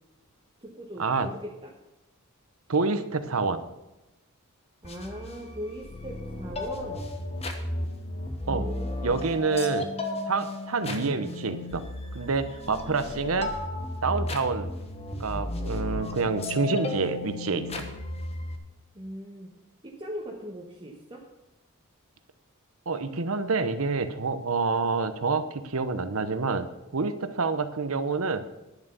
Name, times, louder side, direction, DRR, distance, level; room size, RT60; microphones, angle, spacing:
voice 1, 0.6-1.7 4.8-7.0 8.5-9.3 18.9-19.5 19.8-21.2, equal, 25° right, -2 dB, 1.4 m, -39 dB
voice 2, 2.7-3.6 8.5-8.6 9.0-9.9 10.3-11.8 12.1-13.5 14.0-14.7 15.2-17.8 22.9-26.7 26.9-28.4, right 4 dB, 70° right, 11 dB, 0.9 m, -27 dB
sound 1, 4.8-18.6, left 2 dB, 30° left, 1.3 m, -34 dB
11.0 x 7.3 x 6.9 m, 0.98 s
head